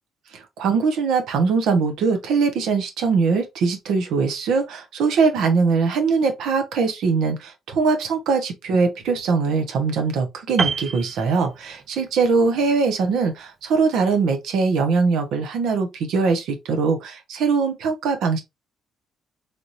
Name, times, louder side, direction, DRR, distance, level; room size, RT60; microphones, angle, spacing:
voice 1, 0.3-18.4, right 4 dB, 85° right, 0.9 m, -21 dB
Piano, 10.6-12.0 12.3-12.5, right 4 dB, 35° right, 0.3 m, -28 dB
3.4 x 2.8 x 2.5 m
cardioid pair, 90°, 0 cm